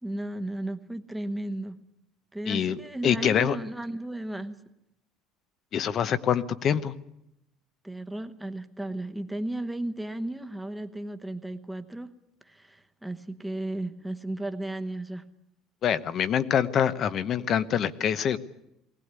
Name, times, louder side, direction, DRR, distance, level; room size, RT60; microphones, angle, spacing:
voice 1, 0.0-1.8 2.3-4.6 7.8-12.1 12.5-15.2, right 1 dB, 5° right, 8 dB, 1.1 m, -34 dB
voice 2, 2.5-2.8 3.0-3.6 5.7-6.9 15.8-18.4, left 8 dB, 40° left, 15 dB, 0.9 m, -25 dB
20.0 x 18.0 x 9.7 m, 0.84 s
cardioid pair, 145°, 0 cm